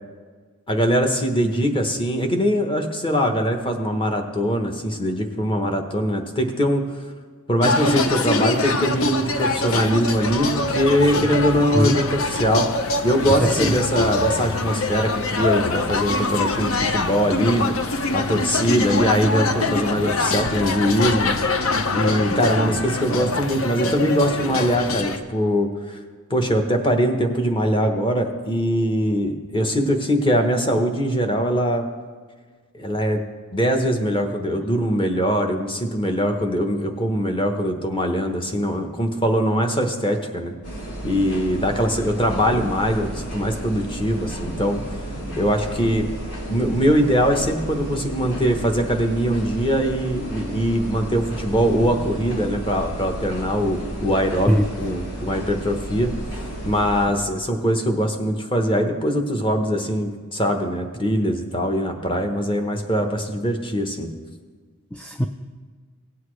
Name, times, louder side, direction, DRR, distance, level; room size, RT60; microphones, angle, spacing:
voice 1, 0.7-6.8 7.5-12.7 13.0-17.7 18.1-21.4 21.9-26.0 26.3-31.8 32.7-33.2 33.5-40.5 41.0-44.8 45.4-46.1 46.5-56.1 56.6-64.1, equal, 25° left, 4 dB, 1.0 m, -22 dB
sound 1, 7.6-25.2, left 3 dB, 65° left, 0.7 m, -24 dB
voice 2, 13.4-13.8 22.3-22.8 45.3-45.4 54.5-54.7 64.9-65.3, equal, 5° left, 5 dB, 0.3 m, -22 dB
sound 2, 40.6-57.1, right 1 dB, 85° left, 2.5 m, -32 dB
17.5 x 8.3 x 3.2 m, 1.5 s
head